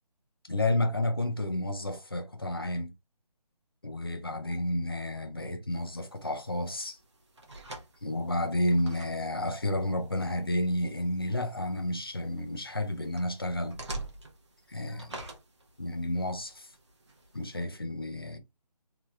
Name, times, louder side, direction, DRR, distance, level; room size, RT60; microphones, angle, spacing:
voice 1, 0.4-2.9 3.8-7.0 8.0-13.8 14.7-15.2 15.8-16.7 17.3-18.4, left 1 dB, 35° left, 0.4 m, -31 dB
sound 1, 5.7-17.6, right 2 dB, 45° right, 0.8 m, -48 dB
3.2 x 2.8 x 2.3 m
figure-of-eight pair, 180°, 21 cm